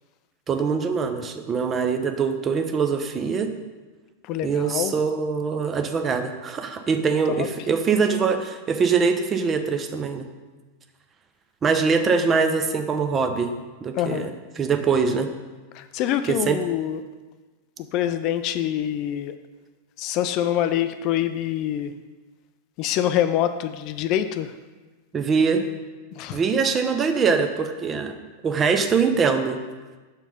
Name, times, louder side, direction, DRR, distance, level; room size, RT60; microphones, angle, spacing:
voice 1, 0.5-3.5 4.4-10.3 11.6-13.5 13.8-15.3 16.3-16.6 25.1-25.6 26.3-28.1 28.4-29.6, right 5 dB, 25° right, 7 dB, 0.6 m, -23 dB
voice 2, 4.2-4.9 7.3-7.5 13.9-14.3 15.7-17.0 17.9-19.4 20.0-21.9 22.8-24.5 26.2-26.4, left 11 dB, 40° left, 11 dB, 0.3 m, -25 dB
5.7 x 4.4 x 5.3 m, 1.3 s
figure-of-eight pair, 90°, 0 cm